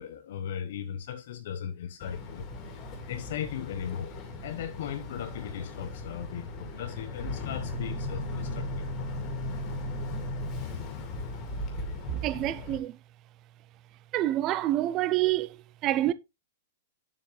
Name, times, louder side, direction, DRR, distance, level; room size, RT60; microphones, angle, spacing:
voice 1, 0.0-2.5 3.1-4.1 4.4-8.9, left 9 dB, 55° left, 0.8 m, -37 dB
Boat Water vehicle, 2.0-12.8, left 2 dB, 20° left, 2.0 m, -37 dB
voice 2, 12.1-13.0 14.1-16.1, right 14 dB, 25° right, 0.4 m, -27 dB
8.7 x 7.3 x 3.1 m
supercardioid pair, 170°, 0 cm